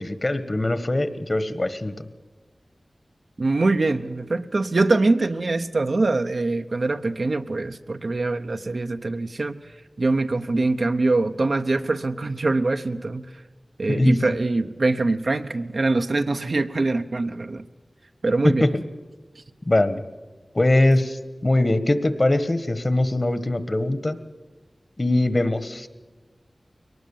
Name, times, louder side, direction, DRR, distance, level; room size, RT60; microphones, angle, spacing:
voice 1, 0.0-2.1 13.9-14.3 18.4-18.7 19.6-20.0 20.5-24.2 25.0-25.9, left 1 dB, 40° left, 13 dB, 1.3 m, -22 dB
voice 2, 3.4-9.6 10.0-13.3 13.8-17.6 18.2-18.7, right 3 dB, 65° right, 7 dB, 0.9 m, -23 dB
22.5 x 19.0 x 7.2 m, 1.3 s
wide cardioid pair, 75°, 0 cm